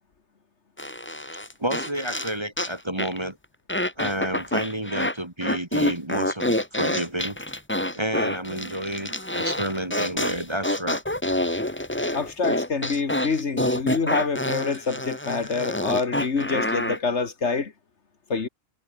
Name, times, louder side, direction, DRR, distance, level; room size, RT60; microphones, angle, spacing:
sound 1, 0.8-2.7 3.0-3.2 3.7-5.1 5.4-17.0, left 1 dB, 10° left, 1.7 m, -27 dB
voice 1, 1.6-3.4 4.0-7.4 7.9-11.0, right 1 dB, 20° right, 2.0 m, -30 dB
voice 2, 12.1-17.7 18.3-18.5, left 4 dB, 60° left, 2.0 m, -26 dB
omnidirectional pair, 1.4 m